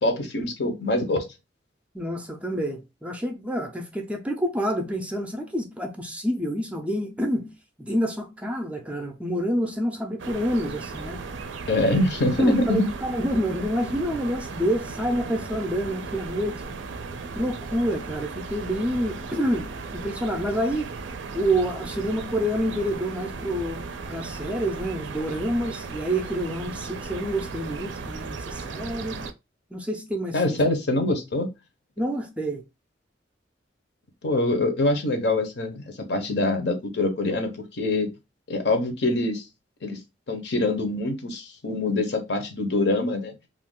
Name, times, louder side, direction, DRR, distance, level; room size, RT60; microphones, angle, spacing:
voice 1, 0.0-1.2 11.7-12.9 30.3-31.5 34.2-38.1 38.5-39.4 39.8-40.0 40.3-43.3, left 2 dB, 65° left, 0.7 m, -24 dB
voice 2, 1.9-7.5 7.8-11.2 11.8-12.0 12.4-16.6 17.3-20.9 21.3-29.2 29.7-30.6 32.0-32.6, equal, 5° right, 0.4 m, -28 dB
sound 1, 10.2-29.3, right 4 dB, 75° right, 0.4 m, -36 dB
2.4 x 2.2 x 3.6 m
head